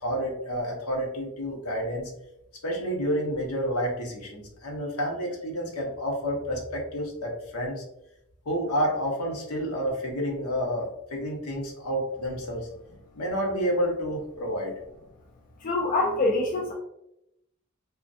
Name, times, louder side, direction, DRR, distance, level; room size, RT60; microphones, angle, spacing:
voice 1, 0.0-2.1 2.6-7.8 8.5-12.7 13.2-14.7, equal, 75° left, 0 dB, 0.8 m, -29 dB
voice 2, 15.6-16.7, left 2 dB, 35° left, 0 dB, 0.3 m, -25 dB
3.0 x 2.3 x 2.6 m, 0.83 s
head